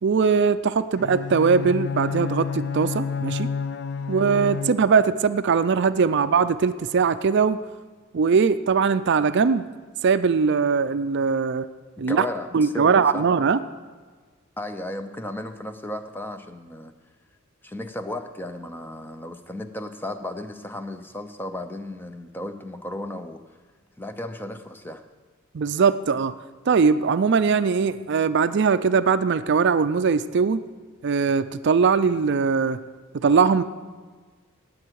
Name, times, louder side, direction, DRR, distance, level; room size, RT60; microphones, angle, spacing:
voice 1, 0.0-3.5 4.1-7.6 8.1-9.7 10.0-11.7 12.0-12.3 12.5-13.6 25.5-26.3 26.7-30.6 31.0-32.8 33.1-33.6, right 5 dB, 55° right, 13 dB, 0.4 m, -20 dB
Bowed string instrument, 1.0-5.2, left 5 dB, 55° left, 0.5 m, -30 dB
voice 2, 12.0-13.3 14.6-16.9 17.6-23.4 24.0-25.0, left 1 dB, 10° left, 8 dB, 0.6 m, -34 dB
19.0 x 7.8 x 4.7 m, 1.4 s
head